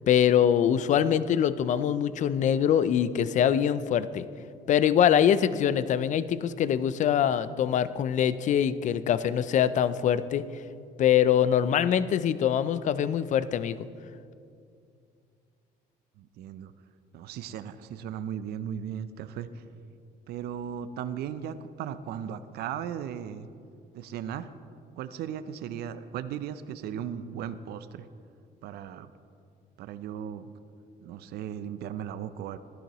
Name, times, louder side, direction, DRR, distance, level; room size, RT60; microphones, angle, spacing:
voice 1, 0.1-4.3 4.7-10.4 11.0-13.8, left 9 dB, 45° left, 15 dB, 0.4 m, -24 dB
voice 2, 16.2-16.7 17.1-19.6 20.3-23.5 23.9-24.5 25.0-28.1 28.6-29.1 29.8-30.5 31.0-32.6, right 9 dB, 70° right, 12 dB, 0.5 m, -37 dB
15.0 x 11.5 x 3.0 m, 2.4 s
cardioid pair, 110°, 17 cm